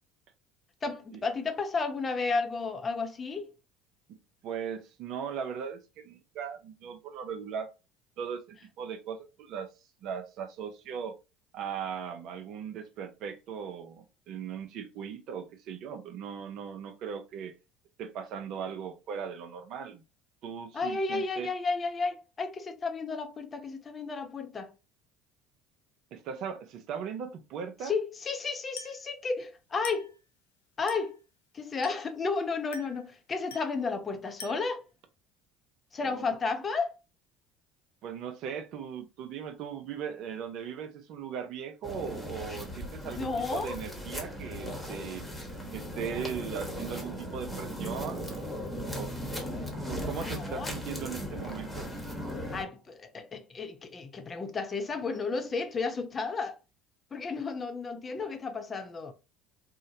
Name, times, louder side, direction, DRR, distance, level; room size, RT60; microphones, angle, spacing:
voice 1, 0.8-3.5 20.7-24.7 27.8-30.1 30.8-31.2 31.5-34.8 35.9-36.9 43.0-43.8 49.5-49.7 50.3-50.7 52.5-56.6 57.1-59.1, left 4 dB, 30° left, 0.5 m, -32 dB
voice 2, 4.4-7.7 8.2-9.7 10.0-11.2 11.5-17.5 18.0-20.0 20.4-21.5 26.1-27.9 36.0-36.3 38.0-45.3 45.7-48.5 48.9-49.1 49.7-51.9, right 7 dB, 55° right, 0.4 m, -38 dB
Glass, 28.8-29.1 29.8-30.2 30.9-31.2 31.8-32.2 32.7-33.1 33.5-33.8 34.4-34.8, left 4 dB, 75° left, 0.5 m, -45 dB
sound 1, 41.8-52.6, equal, 10° left, 1.0 m, -37 dB
2.8 x 2.1 x 2.6 m
hypercardioid pair, 65°, 0 cm